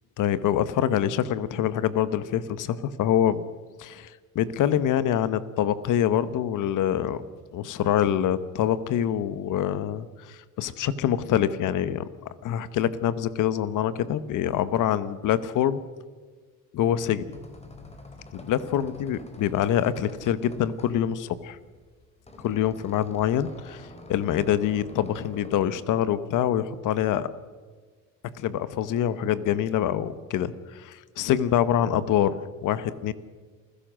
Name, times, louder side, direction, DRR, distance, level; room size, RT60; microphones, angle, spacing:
voice 1, 0.2-3.4 3.8-7.2 7.5-12.0 12.4-15.8 16.7-17.3 18.3-21.6 22.4-23.8 24.1-27.3 28.4-33.1, left 10 dB, 70° left, 14 dB, 1.2 m, -25 dB
sound 1, 17.1-25.7, left 2 dB, 20° left, 3.0 m, -47 dB
28.0 x 15.5 x 6.4 m, 1.5 s
cardioid pair, 125°, 33 cm